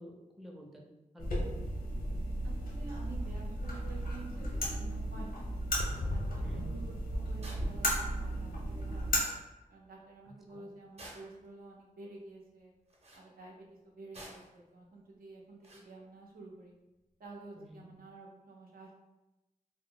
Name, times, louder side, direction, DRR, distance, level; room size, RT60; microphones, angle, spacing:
voice 1, 0.0-1.4 6.4-6.6 10.5-10.7 17.5-17.9, equal, ahead, -1 dB, 0.4 m, -51 dB
sound 1, 1.2-9.2, equal, 90° left, 0.7 m, -35 dB
voice 2, 2.4-5.4 5.9-9.3 9.7-12.7 13.1-16.7 17.2-18.9, right 2 dB, 90° right, -2 dB, 0.6 m, -50 dB
sound 2, 5.8-9.5 9.8-9.9 10.1-10.2, left 1 dB, 60° left, 0.4 m, -40 dB
sound 3, 7.4-7.7 8.8-8.9 9.1-9.3 11.0-11.5 12.9-13.3 14.1-14.6 15.6-15.9, right 1 dB, 45° right, 0.7 m, -50 dB
2.1 x 2.0 x 3.6 m, 1.0 s
wide cardioid pair, 75°, 15 cm